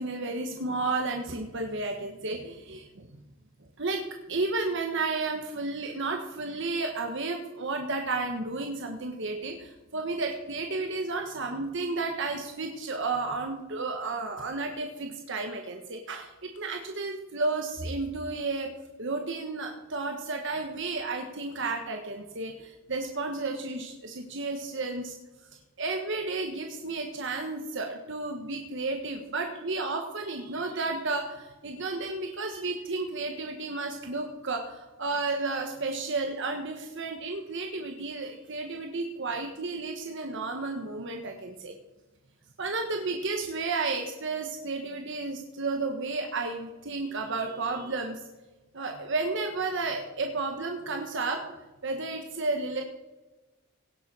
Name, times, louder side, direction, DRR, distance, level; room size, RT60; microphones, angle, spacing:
voice 1, 0.0-3.1 3.8-4.0 4.3-18.7 19.0-25.1 25.8-41.8 42.6-48.2 48.7-51.4 51.8-52.8, right 3 dB, 65° right, 3 dB, 1.3 m, -32 dB
17.5 x 7.1 x 5.6 m, 1.1 s
head